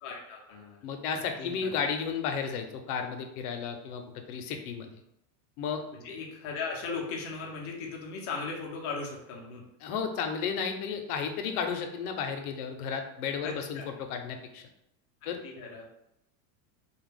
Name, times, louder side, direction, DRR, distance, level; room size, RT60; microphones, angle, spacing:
voice 1, 0.0-0.8 1.4-1.7 5.9-9.6 13.4-13.9 15.4-15.9, left 4 dB, 30° left, -1 dB, 0.5 m, -37 dB
voice 2, 0.8-4.0 4.3-4.9 5.6-5.8 9.8-14.6 15.3-15.4, left 6 dB, 80° left, 5 dB, 0.6 m, -33 dB
2.3 x 2.1 x 3.2 m, 0.81 s
supercardioid pair, 160°, 44 cm